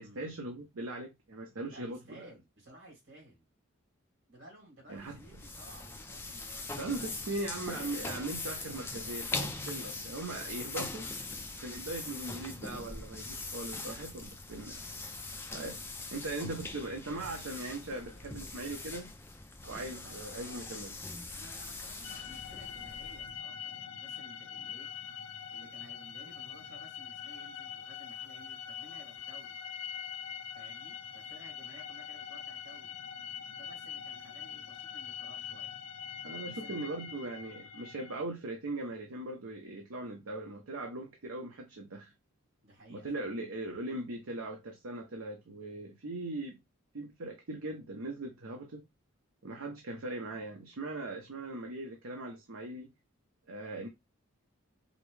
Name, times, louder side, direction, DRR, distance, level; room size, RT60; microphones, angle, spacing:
voice 1, 0.0-2.3 4.9-5.2 6.8-11.1 11.5-14.8 15.5-15.8 16.1-19.1 19.7-20.9 36.2-42.1 42.9-46.6 46.9-48.8 49.4-52.9 53.5-53.9, right 2 dB, 80° right, 0.7 m, -40 dB
voice 2, 1.6-3.4 4.3-7.1 19.6-20.8 21.3-24.9 25.5-29.6 30.5-33.0 33.5-35.7 36.4-36.8 42.6-43.3, right 1 dB, 60° right, 2.6 m, -55 dB
sound 1, 4.9-23.4, left 3 dB, 10° left, 0.3 m, -42 dB
sound 2, 22.0-38.2, left 8 dB, 90° left, 0.5 m, -43 dB
5.1 x 2.0 x 3.2 m
head